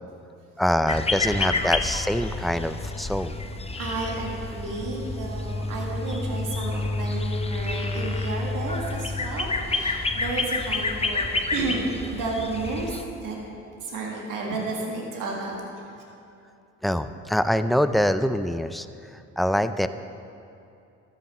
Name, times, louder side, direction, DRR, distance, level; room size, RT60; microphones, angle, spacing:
voice 1, 0.6-3.3 16.8-18.9 19.1-19.9, equal, ahead, 11 dB, 0.4 m, -24 dB
sound 1, 0.9-13.0, left 3 dB, 20° left, 0.7 m, -29 dB
voice 2, 3.8-13.4 13.8-15.9, right 3 dB, 75° right, -1 dB, 1.7 m, -32 dB
13.0 x 6.8 x 4.2 m, 2.7 s
supercardioid pair, 65°, 32 cm